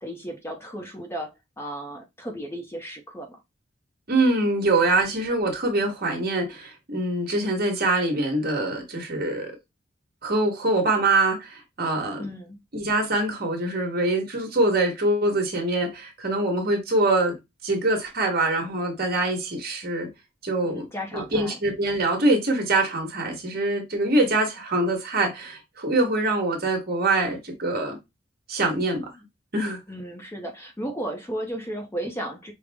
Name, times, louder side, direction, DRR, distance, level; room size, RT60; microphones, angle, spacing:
voice 1, 0.0-3.4 12.2-12.6 20.6-21.6 29.9-32.5, right 1 dB, 15° left, 0.5 m, -34 dB
voice 2, 4.1-9.5 10.2-12.3 12.7-17.4 17.6-20.1 20.4-20.9 21.1-28.0 28.5-29.1 29.5-29.8, right 2 dB, 50° right, 1.2 m, -24 dB
5.1 x 2.0 x 3.4 m
head